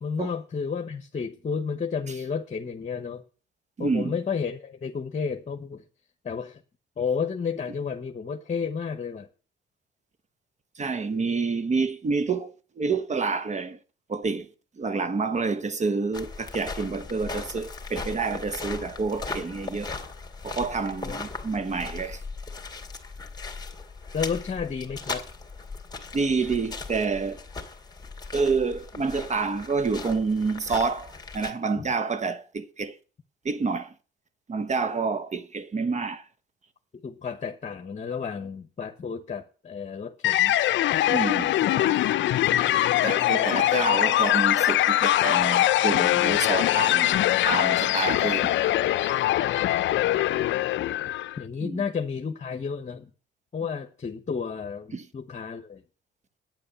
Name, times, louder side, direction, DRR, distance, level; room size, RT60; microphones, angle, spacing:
voice 1, 0.0-3.2 3.8-5.8 6.2-6.6 7.0-9.3 21.0-21.2 24.1-25.3 31.8-31.9 37.0-40.6 41.6-42.4 51.4-53.1 53.5-55.8, left 6 dB, 35° left, 1.2 m, -32 dB
voice 2, 3.8-4.2 10.8-13.8 14.1-14.5 14.8-19.9 20.4-22.2 26.1-27.4 28.3-33.0 33.4-33.9 34.5-36.2 41.1-41.9 43.0-48.6 51.6-51.8 54.9-55.0, right 4 dB, 35° right, 1.0 m, -28 dB
sound 1, 16.1-31.5, left 4 dB, 20° left, 2.4 m, -38 dB
sound 2, 40.2-51.4, left 14 dB, 70° left, 0.5 m, -22 dB
9.1 x 8.5 x 6.9 m
cardioid pair, 90°, 20 cm